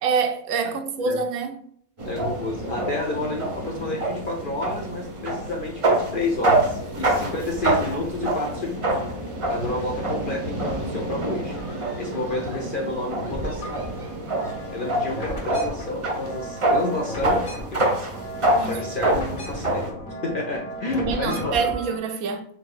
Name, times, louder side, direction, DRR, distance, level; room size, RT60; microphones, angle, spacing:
voice 1, 0.0-1.6 18.6-18.8 20.9-22.5, right 5 dB, 80° right, 1.1 m, -26 dB
voice 2, 2.0-9.0 9.5-11.6 12.0-13.8 14.7-17.4 17.7-18.2 18.7-19.9 20.2-21.6, left 2 dB, 55° left, 0.6 m, -30 dB
sound 1, 2.0-19.9, right 1 dB, 30° right, 0.6 m, -26 dB
sound 2, 6.6-8.1 8.5-10.1 10.5-11.8 12.0-22.0, equal, 35° left, 1.2 m, -37 dB
4.7 x 3.7 x 2.4 m
omnidirectional pair, 1.5 m